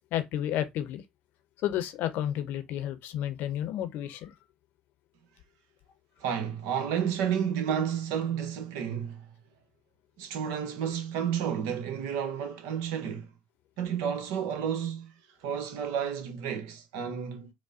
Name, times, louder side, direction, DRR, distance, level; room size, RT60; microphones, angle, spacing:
voice 1, 0.1-1.0 1.6-4.3, left 11 dB, 65° left, 0.6 m, -31 dB
voice 2, 6.2-9.3 10.2-13.3 13.8-15.1 15.4-17.5, right 8 dB, 75° right, 0.8 m, -31 dB
4.8 x 2.1 x 2.6 m
hypercardioid pair, 60°, 3 cm